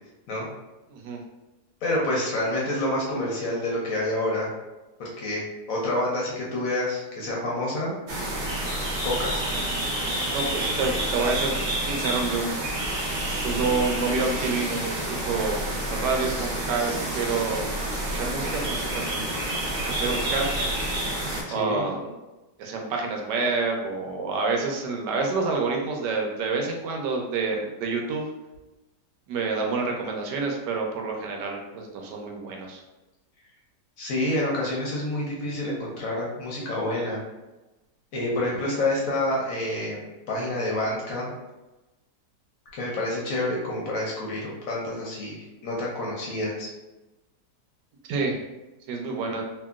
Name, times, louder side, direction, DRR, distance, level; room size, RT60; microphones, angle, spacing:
voice 1, 1.8-4.5 5.0-5.4 5.7-8.0 9.0-9.4 21.5-21.8 34.0-37.2 38.1-41.3 42.7-46.7, left 1 dB, 65° left, -3 dB, 0.9 m, -28 dB
sound 1, 8.1-21.4, right 1 dB, 65° right, 0.5 m, -29 dB
voice 2, 10.3-12.5 13.4-15.6 15.9-17.7 17.9-19.0 19.8-20.5 21.5-22.2 22.6-28.3 29.3-32.8 48.1-48.4 48.9-49.4, right 4 dB, 85° right, 1 dB, 1.2 m, -28 dB
2.9 x 2.7 x 2.3 m, 1.1 s
omnidirectional pair, 1.8 m